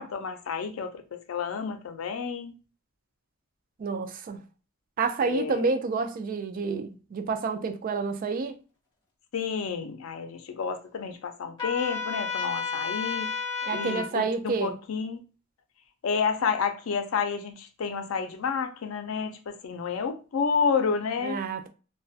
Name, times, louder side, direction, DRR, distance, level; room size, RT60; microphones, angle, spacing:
voice 1, 0.0-2.6 5.2-5.8 9.3-13.3 13.7-15.3 16.0-21.4, left 5 dB, 80° left, 0.4 m, -30 dB
voice 2, 3.8-4.4 5.0-8.6 13.6-14.7 21.2-21.7, right 4 dB, 40° right, 0.3 m, -29 dB
Trumpet, 11.6-14.1, left 5 dB, 25° left, 0.9 m, -31 dB
2.3 x 2.1 x 2.5 m
head